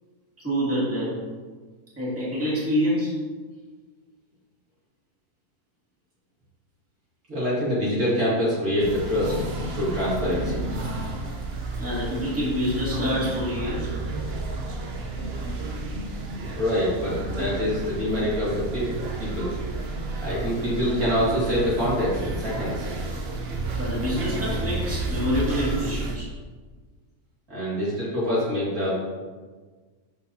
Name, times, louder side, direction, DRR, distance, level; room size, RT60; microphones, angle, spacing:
voice 1, 0.4-1.2 2.0-3.1 11.8-13.9 23.8-26.3, equal, 10° right, -8 dB, 2.1 m, -26 dB
voice 2, 7.3-10.6 16.6-19.5 20.2-22.9 27.5-28.9, equal, 70° right, -9 dB, 2.9 m, -25 dB
sound 1, 8.8-26.2, right 2 dB, 50° right, 0.8 m, -31 dB
11.5 x 4.2 x 2.8 m, 1.4 s
omnidirectional pair, 1.6 m